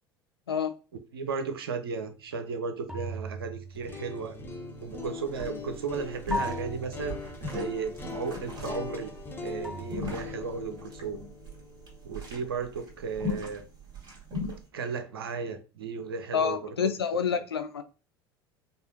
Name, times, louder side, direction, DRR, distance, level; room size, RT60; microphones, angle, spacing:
voice 1, 1.1-4.4 4.8-9.1 9.4-11.2 12.0-13.6 14.7-16.9 17.3-17.4, right 5 dB, 70° right, 0.6 m, -35 dB
sound 1, 2.9-4.6 6.3-7.7 9.6-10.9, equal, 5° right, 0.6 m, -38 dB
sound 2, 3.7-13.7, left 4 dB, 15° left, 0.8 m, -42 dB
sound 3, 4.6-4.7 4.9-5.1 5.4-14.6, left 2 dB, 35° right, 1.9 m, -38 dB
voice 2, 16.3-17.8, left 7 dB, 80° left, 0.5 m, -28 dB
4.9 x 2.4 x 2.6 m
figure-of-eight pair, 70°, 13 cm